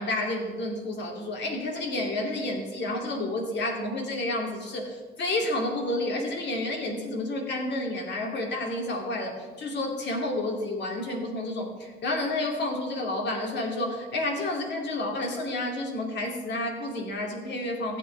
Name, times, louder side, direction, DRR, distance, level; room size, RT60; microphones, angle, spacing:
voice 1, 0.0-18.0, left 1 dB, 60° left, 1 dB, 2.6 m, -30 dB
15.5 x 8.5 x 3.4 m, 1.3 s
cardioid pair, 90°, 20 cm